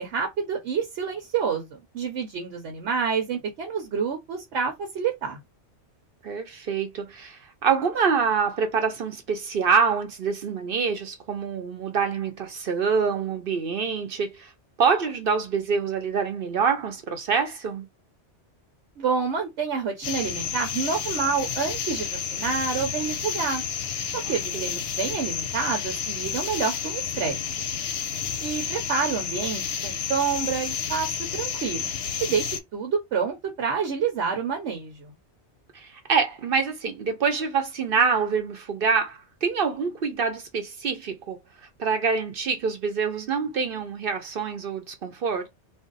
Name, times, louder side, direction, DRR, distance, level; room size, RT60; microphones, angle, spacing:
voice 1, 0.0-5.4 19.0-23.6 24.1-27.4 28.4-31.9 32.2-35.1, right 6 dB, 75° right, 1.0 m, -28 dB
voice 2, 6.2-14.5 14.8-17.9 24.5-24.6 35.7-41.4 41.8-45.5, right 5 dB, 60° right, 0.7 m, -26 dB
sound 1, 20.0-32.6, left 7 dB, 65° left, 0.8 m, -31 dB
2.5 x 2.0 x 3.8 m
omnidirectional pair, 1.2 m